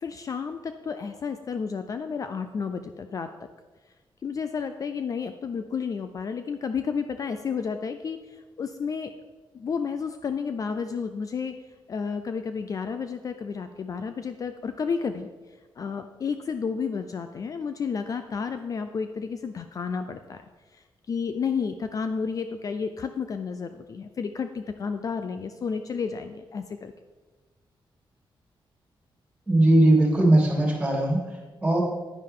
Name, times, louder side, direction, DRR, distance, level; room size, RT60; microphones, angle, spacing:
voice 1, 0.0-3.3 4.2-9.1 9.5-11.6 11.9-15.3 15.8-20.4 20.7-26.9, left 5 dB, 40° left, 8 dB, 0.4 m, -31 dB
voice 2, 29.5-31.8, right 1 dB, 15° right, -2 dB, 2.7 m, -20 dB
10.5 x 9.9 x 3.7 m, 1.3 s
wide cardioid pair, 180°, 9 cm